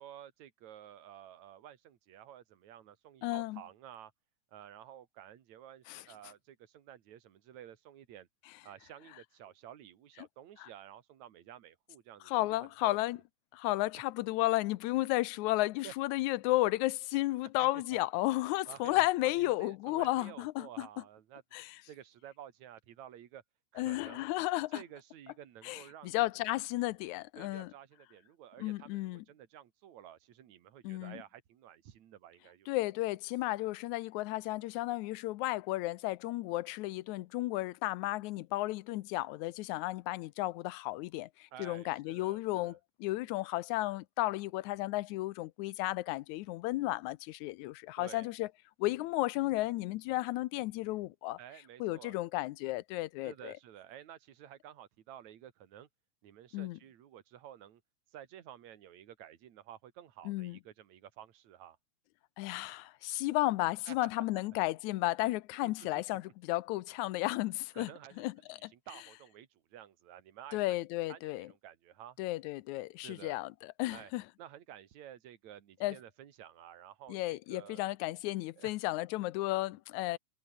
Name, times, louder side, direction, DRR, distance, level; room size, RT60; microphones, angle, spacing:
voice 1, 0.0-4.1 4.5-8.3 8.6-13.0 15.8-15.9 17.6-18.0 18.7-21.4 21.9-23.4 23.7-24.2 24.7-26.2 27.4-32.7 41.5-42.8 48.0-48.3 51.4-52.2 53.2-55.9 56.2-57.8 58.1-61.8 63.9-64.1 65.6-65.7 67.7-70.8 71.1-72.2 73.0-73.4 73.9-74.1 74.4-77.8 78.6-78.8, right 11 dB, 70° right, 3.1 m, -52 dB
voice 2, 3.2-3.6 5.9-6.0 10.6-10.7 12.3-13.2 13.5-20.9 21.5-21.8 23.8-24.8 25.6-27.7 28.6-29.2 30.8-31.2 32.7-48.5 48.8-51.4 51.8-53.5 56.5-56.8 60.3-60.6 62.4-67.9 68.2-68.7 70.5-71.5 72.2-73.5 73.8-74.2 75.8-76.0 77.1-80.2, left 18 dB, 80° left, 2.0 m, -33 dB
omnidirectional pair, 3.5 m